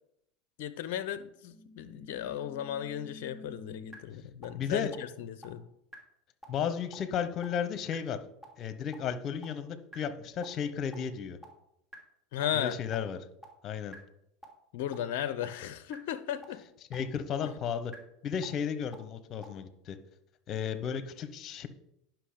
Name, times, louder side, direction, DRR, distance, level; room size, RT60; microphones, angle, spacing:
voice 1, 0.6-5.7 12.3-12.7 14.7-16.6, left 10 dB, 65° left, 13 dB, 0.6 m, -35 dB
sound 1, 1.5-3.9 4.4-4.5 4.9-5.0 5.4-5.5 5.9-6.0 6.4-6.5 6.9-7.0 7.4-7.5 7.9-8.0 8.4-8.5 8.9-9.0 9.4-9.5 9.9-10.0 10.4-10.5 10.9-11.0 11.4-11.5 11.9-12.0 12.4-12.5 12.9-13.0 13.4-13.5 13.9-14.0 14.4-14.5 14.9-15.0 15.4-15.5 15.9-16.0 16.4-16.5 16.9-17.0 17.4-17.5 17.9-18.0 18.4-18.5 18.9-19.0 19.4-19.5, left 1 dB, 5° right, 2.8 m, -47 dB
voice 2, 4.5-4.9 6.5-8.2 8.6-11.4 12.5-13.2 13.6-14.0 16.9-17.9 18.2-20.0 20.5-21.7, left 7 dB, 45° left, 12 dB, 1.0 m, -34 dB
10.0 x 6.0 x 5.1 m, 0.78 s
hypercardioid pair, 80°, 0 cm